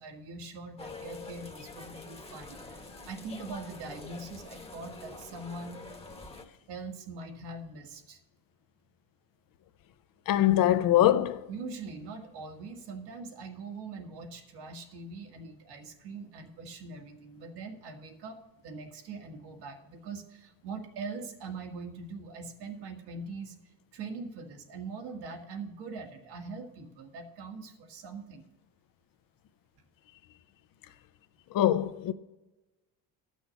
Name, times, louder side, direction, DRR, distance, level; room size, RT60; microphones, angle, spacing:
voice 1, 0.0-5.8 6.7-8.2 11.5-23.5 23.9-28.5, right 3 dB, 75° right, 1.9 m, -42 dB
sound 1, 0.8-6.4, left 3 dB, 15° left, 1.1 m, -46 dB
voice 2, 10.3-11.5 31.5-32.1, left 12 dB, 60° left, 0.7 m, -23 dB
12.0 x 6.3 x 6.9 m
cardioid pair, 120°, 39 cm